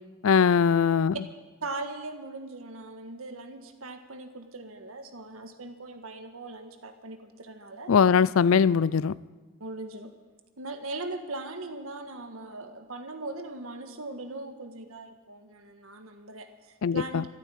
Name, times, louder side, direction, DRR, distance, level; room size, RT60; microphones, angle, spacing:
voice 1, 0.2-1.2 7.9-9.1 16.8-17.2, left 6 dB, 75° left, 20 dB, 0.4 m, -21 dB
voice 2, 1.6-7.9 9.6-10.1 10.6-17.3, right 2 dB, 80° right, 6 dB, 1.7 m, -40 dB
13.5 x 12.0 x 8.9 m, 1.4 s
head